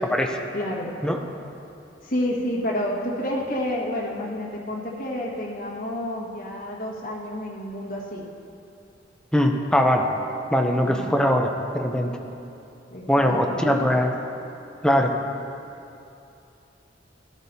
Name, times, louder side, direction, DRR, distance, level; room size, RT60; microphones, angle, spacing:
voice 1, 0.5-0.9 2.0-8.3 10.8-11.2 12.9-13.8, left 1 dB, 45° left, -4 dB, 1.6 m, -29 dB
voice 2, 9.3-10.1 10.5-12.1 13.1-14.1 14.8-15.1, equal, 5° left, 2 dB, 0.6 m, -21 dB
13.0 x 12.0 x 2.8 m, 2.7 s
head